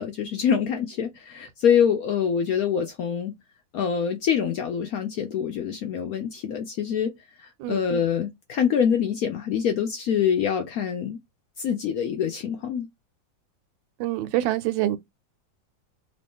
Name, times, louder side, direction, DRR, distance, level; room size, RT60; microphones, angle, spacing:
voice 1, 0.0-3.3 3.7-7.1 7.7-11.2 11.6-12.9, left 8 dB, 75° left, 0.8 m, -25 dB
voice 2, 14.0-15.0, right 14 dB, 85° right, 1.3 m, -25 dB
3.0 x 2.7 x 3.4 m
omnidirectional pair, 2.0 m